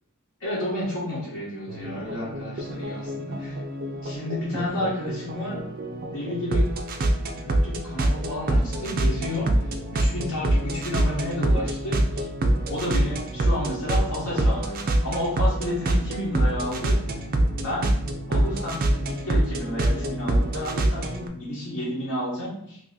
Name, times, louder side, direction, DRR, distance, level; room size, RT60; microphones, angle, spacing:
voice 1, 0.4-3.6 4.0-5.6 6.1-6.7 7.3-9.5 10.0-12.2 12.7-17.0 17.6-17.9 18.3-22.8, left 1 dB, 70° left, -8 dB, 1.0 m, -31 dB
sound 1, 1.7-21.3, right 1 dB, 40° right, 0.4 m, -25 dB
2.6 x 2.6 x 3.8 m, 0.72 s
head